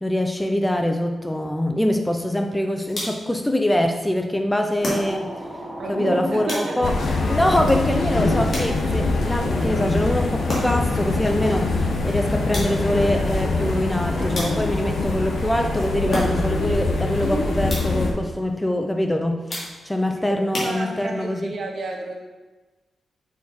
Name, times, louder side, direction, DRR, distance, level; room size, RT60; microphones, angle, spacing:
voice 1, 0.0-5.3 5.9-6.9 7.2-21.5, left 1 dB, 10° left, 4 dB, 0.4 m, -24 dB
sound 1, 2.9-3.4 4.8-5.5 6.5-7.1 8.5-9.1 10.5-11.0 12.5-13.0 14.3-14.9 16.1-16.7 17.7-18.1 19.5-20.0 20.5-21.3, left 1 dB, 50° left, 2.3 m, -31 dB
sound 2, 4.8-16.3, right 1 dB, 20° right, 1.5 m, -36 dB
voice 2, 5.8-6.8 20.1-22.2, right 2 dB, 55° right, 1 dB, 1.1 m, -31 dB
sound 3, 6.8-18.1, left 3 dB, 65° left, 0.9 m, -24 dB
6.9 x 4.6 x 4.2 m, 1.2 s
wide cardioid pair, 150°, 0 cm